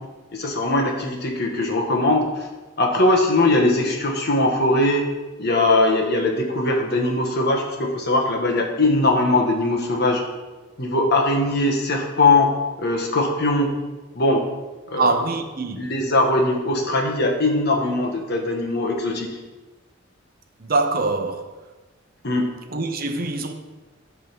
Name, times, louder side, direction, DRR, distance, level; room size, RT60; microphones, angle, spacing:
voice 1, 0.3-2.3 2.8-5.1 5.4-10.2 10.8-12.5 12.8-13.7 14.1-14.4 14.9-15.1 15.8-19.3 22.2-22.5, left 2 dB, 55° left, 1.3 m, -20 dB
voice 2, 15.0-15.9 20.6-21.6 22.7-23.5, right 3 dB, 50° right, 0.7 m, -24 dB
10.5 x 3.7 x 5.9 m
head